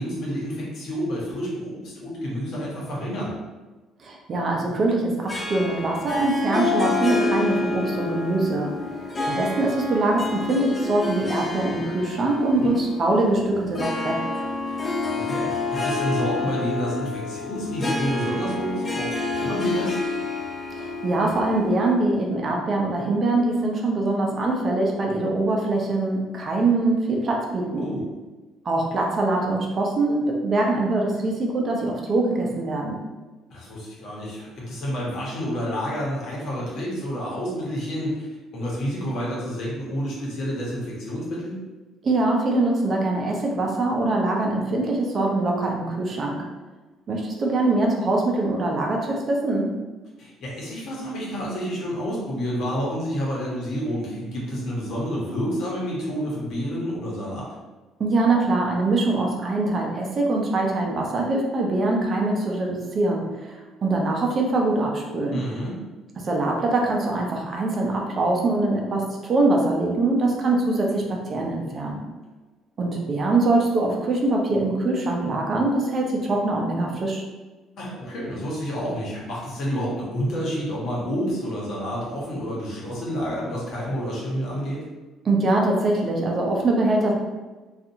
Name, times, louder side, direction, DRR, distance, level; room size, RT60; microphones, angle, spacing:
voice 1, 0.0-3.4 12.5-12.8 14.7-19.9 27.8-28.0 33.5-41.5 50.2-57.5 65.3-65.7 77.8-84.8, equal, 65° left, -5 dB, 1.0 m, -29 dB
voice 2, 4.0-8.7 9.3-14.2 20.7-27.9 28.6-33.0 42.0-46.4 47.1-49.7 58.0-65.4 66.2-72.0 72.8-77.2 85.2-87.1, right 2 dB, 40° right, 0 dB, 0.5 m, -23 dB
Harp, 5.3-22.0, left 3 dB, 25° left, 0.4 m, -28 dB
2.7 x 2.4 x 2.6 m, 1.2 s
cardioid pair, 115°, 0 cm